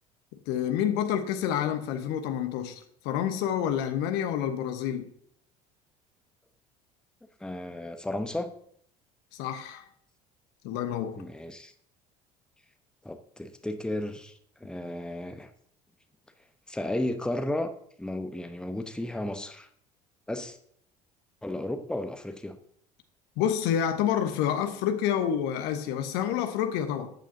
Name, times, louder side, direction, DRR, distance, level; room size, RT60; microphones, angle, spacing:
voice 1, 0.5-5.1 9.3-9.8 10.6-11.2 23.4-27.1, left 9 dB, 60° left, 1.1 m, -28 dB
voice 2, 7.4-8.5 11.2-11.7 13.0-15.5 16.7-17.7 18.0-19.7 20.3-20.6 21.4-22.6, left 1 dB, 5° left, 1.0 m, -34 dB
13.0 x 8.7 x 2.8 m
figure-of-eight pair, 60°, 20 cm